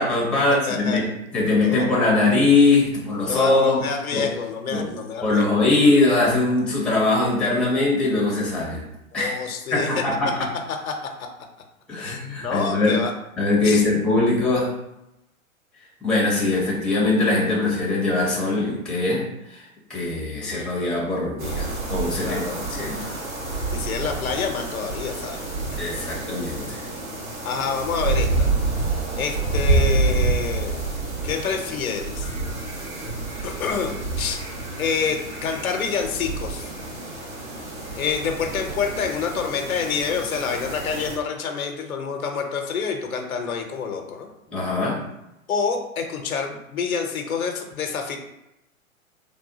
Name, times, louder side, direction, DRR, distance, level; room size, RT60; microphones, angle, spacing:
voice 1, 0.0-1.0 1.3-3.8 4.1-4.3 4.7-4.9 5.2-8.8 9.1-9.4 9.7-10.5 11.9-13.0 13.4-14.7 16.0-19.6 19.9-23.1 25.7-26.9 44.5-45.1, left 2 dB, ahead, -5 dB, 0.6 m, -21 dB
voice 2, 0.7-1.2 1.6-1.9 3.2-5.6 9.1-10.0 10.8-11.1 12.0-13.1 13.6-13.8 22.2-22.7 23.7-25.4 27.4-28.5 29.2-30.9 31.2-32.3 33.4-34.4 34.8-36.7 37.9-44.3 45.5-48.2, left 5 dB, 80° left, 3 dB, 0.7 m, -27 dB
sound 1, 21.4-41.2, right 3 dB, 75° right, 1.3 m, -28 dB
3.3 x 2.3 x 2.7 m, 0.88 s
hypercardioid pair, 115°, 41 cm